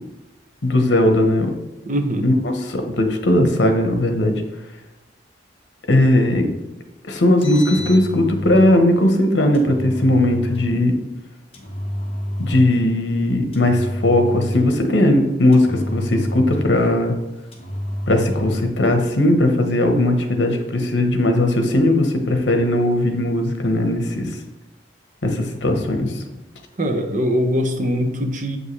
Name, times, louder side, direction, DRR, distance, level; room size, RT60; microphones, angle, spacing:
voice 1, 0.6-1.5 2.2-4.4 5.9-6.5 7.0-10.9 12.4-17.1 18.1-24.3 25.2-26.1, left 1 dB, 65° left, 5 dB, 1.0 m, -18 dB
voice 2, 1.9-2.3 26.8-28.6, equal, 45° right, 5 dB, 0.8 m, -21 dB
Engine, 7.4-8.7 9.5-10.7 11.5-12.8 13.5-14.8 15.5-16.9 17.5-18.7, equal, 30° left, 1.1 m, -28 dB
7.7 x 5.5 x 3.2 m, 1.0 s
head